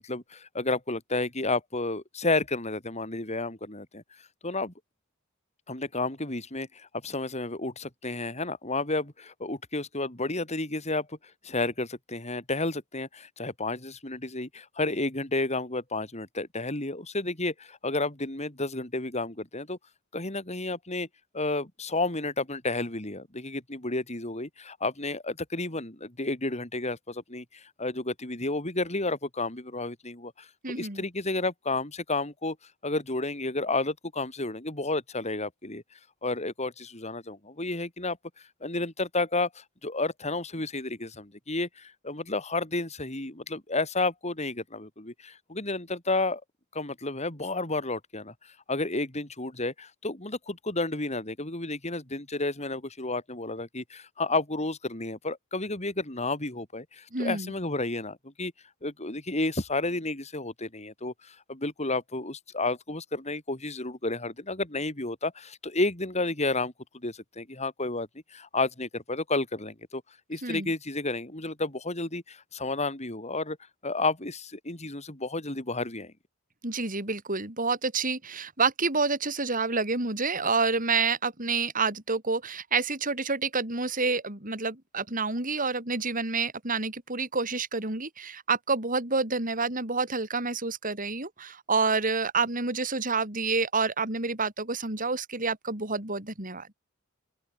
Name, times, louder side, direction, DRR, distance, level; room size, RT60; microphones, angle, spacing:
voice 1, 0.0-4.0 4.4-4.7 5.7-11.2 11.4-19.8 20.1-21.1 21.3-32.6 32.8-35.8 36.2-38.2 38.6-46.4 46.7-48.3 48.7-58.5 58.8-70.0 70.3-73.6 73.8-76.1, left 2 dB, 35° left, 5.2 m, -31 dB
voice 2, 30.6-31.1 57.1-57.5 70.4-70.7 76.6-96.7, right 4 dB, 40° right, 5.4 m, -28 dB
open air
head